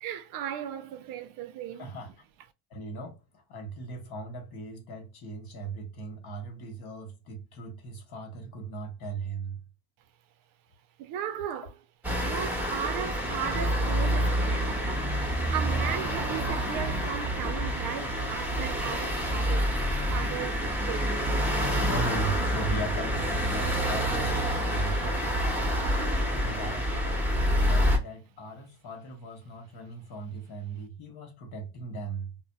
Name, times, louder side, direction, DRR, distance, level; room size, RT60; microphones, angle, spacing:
voice 1, 0.0-1.9 11.0-11.7 12.2-19.7 20.1-21.1, right 9 dB, 50° right, 0.5 m, -36 dB
voice 2, 1.7-2.1 2.7-9.6 15.6-16.0 21.8-25.2 26.2-27.1 27.4-32.4, right 3 dB, 50° left, 1.1 m, -38 dB
sound 1, 12.0-28.0, equal, 5° right, 1.0 m, -27 dB
2.6 x 2.1 x 2.2 m
supercardioid pair, 110°, 46 cm